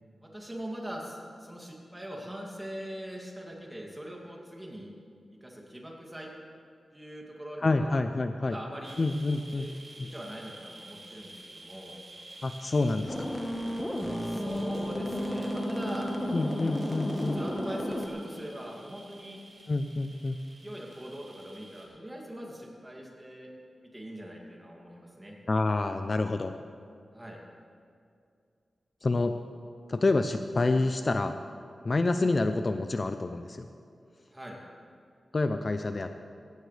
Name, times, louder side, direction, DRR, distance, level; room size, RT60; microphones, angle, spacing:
voice 1, 0.2-4.9 5.4-6.3 6.9-8.0 8.4-9.8 10.0-12.0 14.2-16.1 17.3-19.4 20.6-23.5 23.8-25.4 27.1-27.4 34.3-34.6, equal, 15° right, -1 dB, 2.6 m, -42 dB
voice 2, 7.6-8.6 9.0-9.7 10.0-10.1 12.4-13.3 16.3-17.4 19.7-20.4 25.5-26.5 29.0-29.3 29.9-31.3 31.8-33.7 35.3-36.2, left 2 dB, 40° left, 8 dB, 0.5 m, -28 dB
sound 1, 8.8-21.8, right 2 dB, 50° right, 4.0 m, -50 dB
sound 2, 13.1-18.1, equal, 15° left, 1.3 m, -32 dB
17.5 x 16.0 x 3.4 m, 2.3 s
wide cardioid pair, 100°, 0 cm